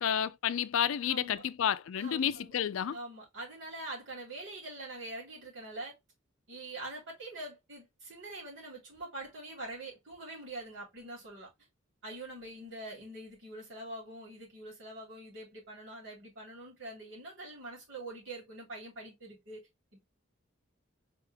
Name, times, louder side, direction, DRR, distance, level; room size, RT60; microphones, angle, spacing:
voice 1, 0.0-3.0, left 9 dB, 80° left, 0.4 m, -30 dB
voice 2, 1.0-1.4 1.9-2.6 2.9-5.9 6.5-11.5 12.0-20.0, right 2 dB, 70° right, 3.3 m, -44 dB
4.4 x 3.4 x 3.2 m
head